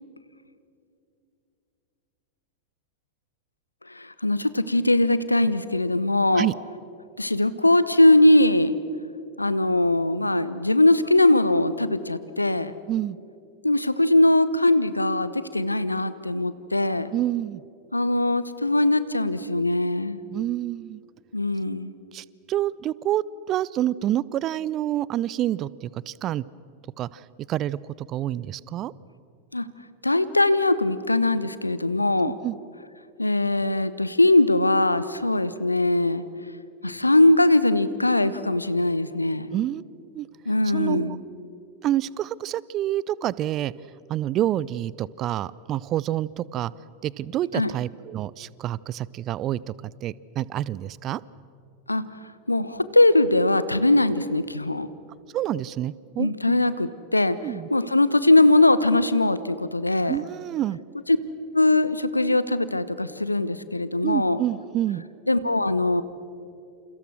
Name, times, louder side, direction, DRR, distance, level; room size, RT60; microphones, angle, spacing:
voice 1, 4.0-6.5 7.2-8.7 9.4-12.7 13.6-17.1 17.9-20.2 21.3-21.9 29.5-29.6 30.0-32.3 33.2-36.2 36.8-39.5 40.5-41.2 47.5-47.7 51.9-52.0 52.5-54.9 56.2-57.4 57.7-60.2 61.1-61.2 61.5-64.4 65.3-66.0, left 2 dB, 85° left, 15 dB, 1.0 m, -21 dB
voice 2, 17.1-17.6 20.3-21.0 22.1-23.2 23.5-26.4 27.0-27.2 27.5-28.9 32.2-32.6 39.5-39.8 40.1-40.3 40.7-41.2 41.8-43.7 44.1-46.7 47.0-51.2 55.3-56.3 57.4-57.7 60.1-60.8 64.0-65.0, right 13 dB, 35° right, 22 dB, 0.6 m, -28 dB
29.0 x 28.5 x 6.3 m, 2.6 s
figure-of-eight pair, 90°, 0 cm